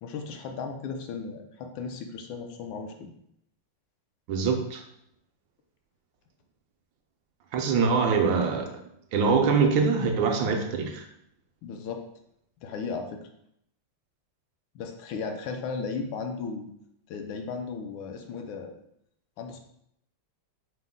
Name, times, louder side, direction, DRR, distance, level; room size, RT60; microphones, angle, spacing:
voice 1, 0.0-3.1 11.6-12.0 12.6-13.2 14.7-16.7 17.1-18.7 19.4-19.6, left 5 dB, 80° left, 4 dB, 1.3 m, -35 dB
voice 2, 4.3-4.8 7.5-8.8 9.1-11.0, right 5 dB, 75° right, 4 dB, 1.2 m, -24 dB
5.2 x 2.1 x 3.6 m, 0.75 s
omnidirectional pair, 2.2 m